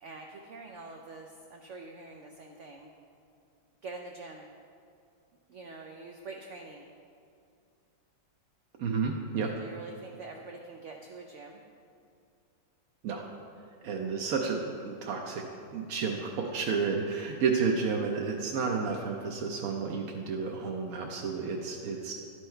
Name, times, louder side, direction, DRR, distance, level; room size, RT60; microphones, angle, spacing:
voice 1, 0.0-2.9 3.8-4.5 5.5-6.9 9.4-11.6, right 3 dB, 90° right, 2 dB, 0.6 m, -45 dB
voice 2, 8.8-9.5 13.0-13.2 13.8-15.5 15.7-22.1, right 5 dB, 65° right, 0 dB, 0.9 m, -31 dB
11.5 x 4.7 x 4.4 m, 2.4 s
omnidirectional pair, 1.9 m